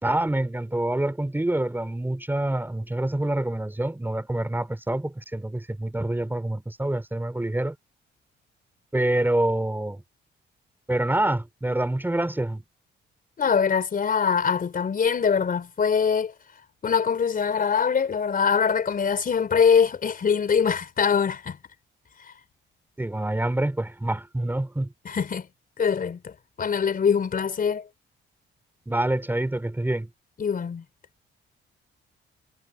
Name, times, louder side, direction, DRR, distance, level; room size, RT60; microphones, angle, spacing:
voice 1, 0.0-7.8 8.9-10.0 10.9-12.6 23.0-24.9 28.9-30.1, right 1 dB, 10° right, 3.0 m, -26 dB
voice 2, 13.4-16.3 16.8-21.6 25.0-25.5 25.8-26.3 26.6-27.9 30.4-30.8, left 6 dB, 45° left, 4.4 m, -23 dB
cardioid pair, 90°, 20 cm